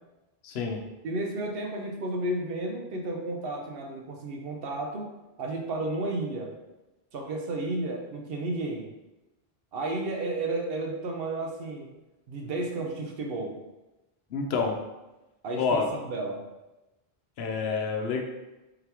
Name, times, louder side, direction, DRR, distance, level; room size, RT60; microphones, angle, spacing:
voice 1, 0.4-0.8 14.3-14.7 15.6-15.9 17.4-18.2, left 5 dB, 85° left, 3 dB, 0.9 m, -28 dB
voice 2, 1.0-5.1 5.4-6.5 7.1-8.9 9.7-11.9 12.3-13.6 15.4-16.4, right 2 dB, 70° right, 2 dB, 0.9 m, -32 dB
3.9 x 2.9 x 3.4 m, 1.0 s
omnidirectional pair, 1.0 m